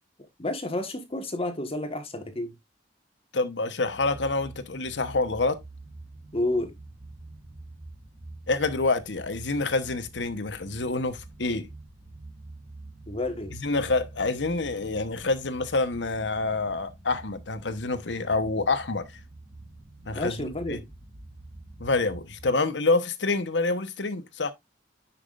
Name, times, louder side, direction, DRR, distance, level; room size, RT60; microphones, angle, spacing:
voice 1, 0.4-2.5 6.3-6.7 13.1-13.5 20.1-20.8, left 2 dB, 35° left, 1.5 m, -30 dB
voice 2, 3.3-5.6 8.5-11.7 13.5-19.2 20.1-20.8 21.8-24.5, left 3 dB, 80° left, 1.1 m, -27 dB
sound 1, 3.8-22.5, right 2 dB, 65° right, 4.4 m, -46 dB
10.0 x 5.8 x 2.5 m
head